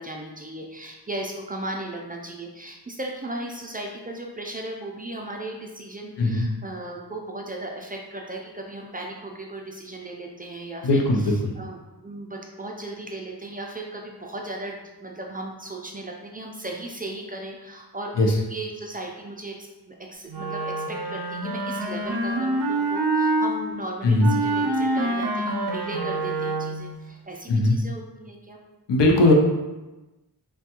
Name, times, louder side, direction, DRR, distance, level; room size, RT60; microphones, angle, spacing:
voice 1, 0.0-28.6, right 1 dB, 25° right, 0 dB, 0.3 m, -36 dB
voice 2, 10.8-11.5 18.2-18.4 24.0-24.3 27.5-27.8 28.9-29.3, left 2 dB, 90° left, 1 dB, 0.6 m, -19 dB
Wind instrument woodwind instrument, 20.3-23.5 24.2-26.9, right 2 dB, 85° right, 0.5 m, -26 dB
3.3 x 2.2 x 2.8 m, 1.1 s
wide cardioid pair, 70°, 41 cm